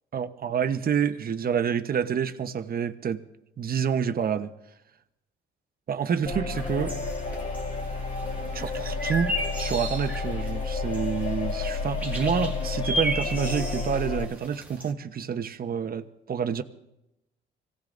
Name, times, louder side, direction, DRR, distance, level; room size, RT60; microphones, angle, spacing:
voice 1, 0.1-3.2 3.6-4.5 5.9-7.0 8.5-16.6, right 7 dB, 50° right, 1.0 m, -28 dB
sound 1, 6.2-14.2, left 4 dB, 45° left, 3.4 m, -31 dB
sound 2, 6.5-14.9, equal, 10° right, 2.0 m, -35 dB
25.5 x 17.0 x 2.6 m
cardioid pair, 90°, 20 cm